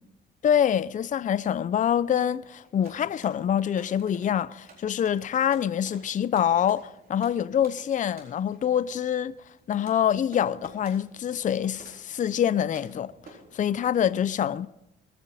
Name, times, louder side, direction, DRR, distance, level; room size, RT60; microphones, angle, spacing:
voice 1, 0.4-9.3 9.7-13.1 13.5-14.7, left 9 dB, 40° left, 0.5 m, -25 dB
sound 1, 2.5-13.6, right 3 dB, 50° right, 4.2 m, -53 dB
21.5 x 9.4 x 4.1 m
cardioid pair, 90°, 20 cm